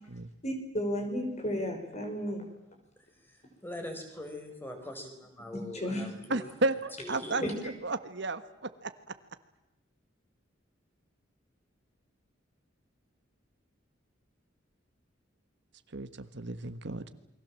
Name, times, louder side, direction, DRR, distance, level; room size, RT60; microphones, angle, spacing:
voice 1, 0.4-2.4 5.5-6.1 7.4-7.5, equal, 35° left, 4 dB, 5.8 m, -33 dB
voice 2, 3.2-6.5 7.0-7.5, left 1 dB, 10° left, 5 dB, 4.9 m, -42 dB
voice 3, 6.3-8.9 15.9-17.1, right 2 dB, 60° right, 10 dB, 1.4 m, -33 dB
28.5 x 23.0 x 7.6 m, 0.92 s
head